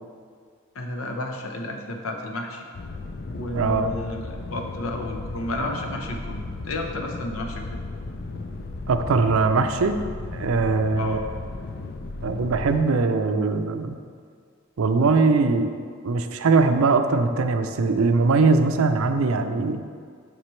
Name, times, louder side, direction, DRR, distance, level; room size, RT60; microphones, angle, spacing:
voice 1, 0.7-2.7 3.3-7.7 11.0-11.2, left 1 dB, 80° left, 2 dB, 0.8 m, -32 dB
sound 1, 2.7-12.8, left 2 dB, 45° left, 0.4 m, -35 dB
voice 2, 3.5-3.9 8.9-10.0 10.3-11.2 12.2-14.0 14.8-15.7 16.0-19.8, right 4 dB, 80° right, 8 dB, 0.5 m, -21 dB
7.3 x 5.9 x 3.2 m, 2.1 s
head